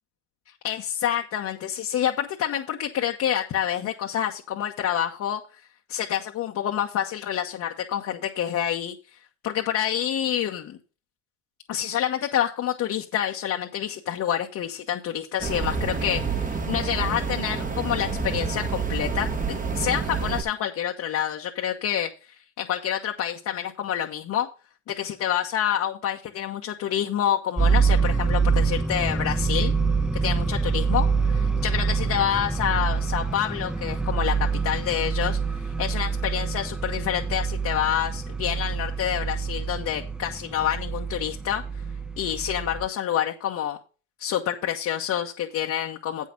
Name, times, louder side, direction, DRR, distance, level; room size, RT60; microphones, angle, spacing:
voice 1, 0.6-5.4 5.9-8.9 9.4-10.8 11.7-24.5 24.9-29.7 30.2-35.4 35.8-41.6 42.2-43.8 44.2-46.3, left 10 dB, 50° left, 1 dB, 1.1 m, -27 dB
sound 1, 15.4-20.4, right 5 dB, 25° right, 1.5 m, -28 dB
sound 2, 27.6-42.9, right 5 dB, ahead, 0.4 m, -26 dB
8.2 x 6.5 x 5.2 m, 0.34 s
supercardioid pair, 85°, 35 cm